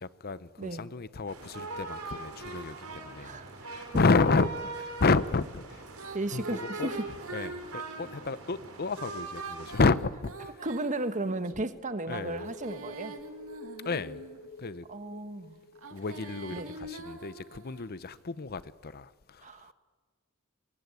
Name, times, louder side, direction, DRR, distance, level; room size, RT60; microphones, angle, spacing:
voice 1, 0.0-3.4 3.7-4.5 5.0-5.8 6.3-6.9 7.3-10.5 12.1-12.5 13.8-14.2 14.6-14.9 15.9-19.5, left 3 dB, 45° left, 0.7 m, -30 dB
sound 1, 1.3-9.8, right 3 dB, 90° right, 4.3 m, -41 dB
voice 2, 3.2-3.5 3.9-4.0 6.1-7.0 10.6-13.1 14.9-15.6 16.5-16.7 19.4-19.7, right 2 dB, 35° right, 1.3 m, -34 dB
Female singing, 5.9-8.1 9.2-11.5 12.3-14.5 15.7-18.0, right 2 dB, 70° right, 2.6 m, -46 dB
sound 2, 12.1-17.4 17.6-17.7, left 2 dB, 85° left, 3.3 m, -47 dB
25.0 x 21.5 x 9.5 m
head